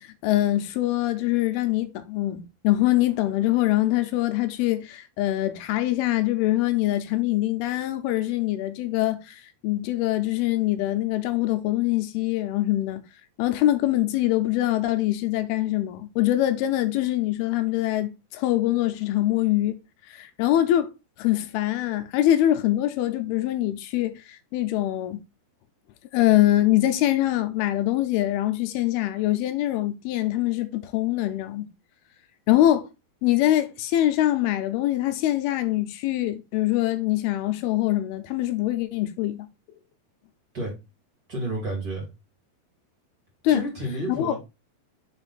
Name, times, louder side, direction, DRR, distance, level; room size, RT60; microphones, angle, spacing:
voice 1, 0.0-13.0 13.4-19.8 20.1-20.9 21.2-25.2 26.1-31.7 32.5-32.9 33.2-39.5 43.4-43.6 44.2-44.3, left 14 dB, 80° left, 2.5 m, -24 dB
voice 2, 41.3-42.1 43.5-44.4, right 1 dB, 30° right, 2.3 m, -30 dB
5.4 x 5.2 x 3.9 m
omnidirectional pair, 4.7 m